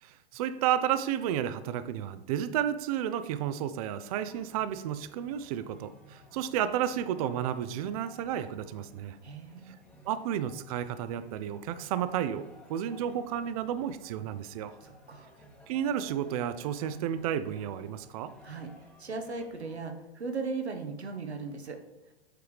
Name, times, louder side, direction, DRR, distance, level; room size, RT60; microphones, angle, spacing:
voice 1, 0.0-9.2 10.1-14.7 15.7-18.3, right 10 dB, 35° right, 13 dB, 0.4 m, -32 dB
sound 1, 4.3-19.8, equal, 5° left, 0.9 m, -56 dB
voice 2, 9.2-9.8 14.8-15.3 18.4-21.8, right 4 dB, 85° right, 5 dB, 1.0 m, -38 dB
8.0 x 4.6 x 3.4 m, 1.1 s
figure-of-eight pair, 105°, 32 cm